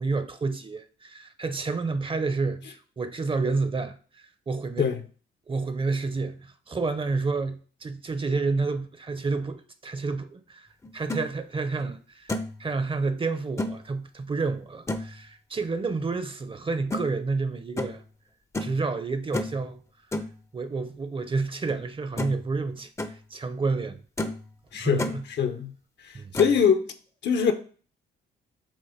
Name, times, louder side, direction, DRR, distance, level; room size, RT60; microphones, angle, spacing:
voice 1, 0.0-4.0 4.5-4.9 5.5-10.7 10.9-12.3 12.6-18.0 18.6-19.8 20.5-22.9 23.3-24.0 24.8-25.2 26.1-26.3, right 4 dB, 25° right, 0.7 m, -29 dB
sound 1, 10.8-11.2 11.8-11.9 12.3-12.6 13.6-13.8 14.9-15.1 16.9-17.0 17.8-18.0 18.5-18.8 19.3-19.6 20.1-20.3 21.7-21.8 22.2-22.5 22.8-23.1 23.7-23.8 24.2-24.4 24.7-25.2 26.3-26.6, left 2 dB, 15° left, 0.6 m, -31 dB
voice 2, 24.7-25.7 26.3-26.8 27.2-27.5, left 7 dB, 60° left, 0.8 m, -22 dB
7.4 x 2.6 x 5.0 m
cardioid pair, 90°, 20 cm